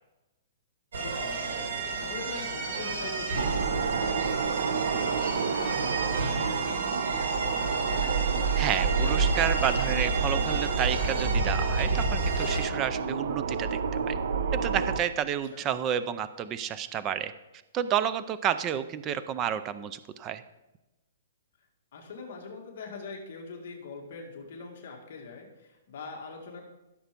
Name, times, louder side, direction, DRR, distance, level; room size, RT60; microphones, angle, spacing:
sound 1, 0.9-12.6, right 3 dB, 80° right, 4.1 m, -31 dB
voice 1, 1.0-8.2 15.3-15.6 21.9-26.6, left 4 dB, 45° left, 0 dB, 2.0 m, -42 dB
sound 2, 3.3-15.0, right 5 dB, 60° right, 0.8 m, -29 dB
voice 2, 8.6-13.8 14.1-14.2 14.5-17.3 17.7-20.4, right 9 dB, 15° right, 13 dB, 0.4 m, -30 dB
14.5 x 7.1 x 5.2 m, 1.0 s
hypercardioid pair, 175°, 0 cm